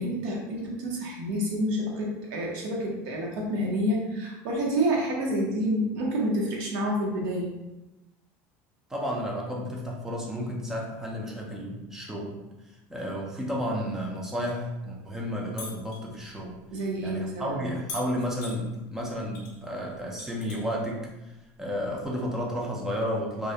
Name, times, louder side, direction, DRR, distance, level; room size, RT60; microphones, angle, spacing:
voice 1, 0.0-7.5 16.7-17.6, equal, 60° right, -2 dB, 0.6 m, -28 dB
voice 2, 8.9-12.4 12.9-16.5 17.0-21.3 21.6-23.5, equal, 5° right, -3 dB, 0.3 m, -32 dB
sound 1, 15.6-16.0 17.9-18.6 19.3-19.6 19.9-20.8 22.0-22.1, left 3 dB, 50° left, 0.7 m, -40 dB
2.3 x 2.0 x 2.7 m, 0.99 s
cardioid pair, 170°, 7 cm